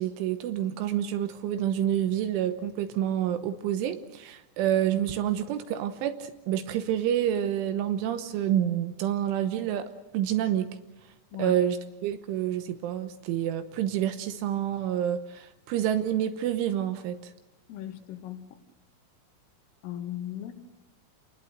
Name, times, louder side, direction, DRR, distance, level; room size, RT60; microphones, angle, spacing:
voice 1, 0.0-9.9 10.1-10.8 11.4-17.3, right 10 dB, 75° right, 9 dB, 3.3 m, -28 dB
voice 2, 17.7-18.5 19.8-20.5, left 11 dB, 75° left, 6 dB, 4.1 m, -37 dB
29.0 x 20.5 x 6.5 m, 1.0 s
omnidirectional pair, 6.0 m